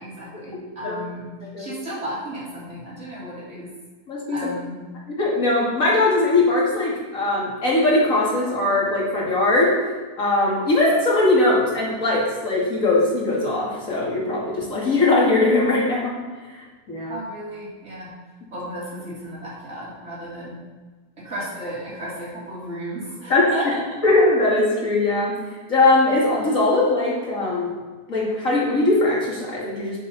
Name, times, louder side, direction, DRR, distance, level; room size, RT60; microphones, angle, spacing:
voice 1, 0.0-3.7 4.3-4.8 17.1-18.1 18.5-20.6 21.2-23.8, equal, 45° right, -7 dB, 3.6 m, -34 dB
voice 2, 4.1-4.4 5.1-9.7 10.2-16.1 16.6-17.2 23.3-23.4 24.0-25.3 25.7-27.7 28.1-30.0, left 2 dB, 55° left, -5 dB, 2.9 m, -20 dB
9.3 x 9.0 x 4.3 m, 1.3 s
omnidirectional pair, 1.7 m